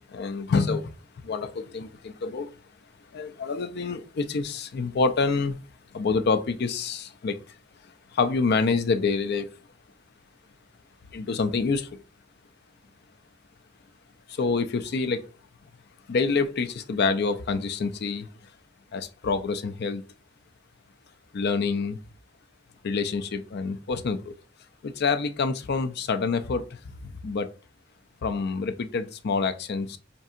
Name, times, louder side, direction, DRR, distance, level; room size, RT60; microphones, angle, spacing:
voice 1, 0.1-2.5 3.1-5.6 5.9-7.5 8.1-9.5 11.1-12.0 14.3-15.3 16.1-18.3 18.9-20.0 21.3-22.0 22.8-24.3 24.8-27.5 28.2-30.0, left 4 dB, 55° left, 0.4 m, -27 dB
5.3 x 2.7 x 2.4 m
head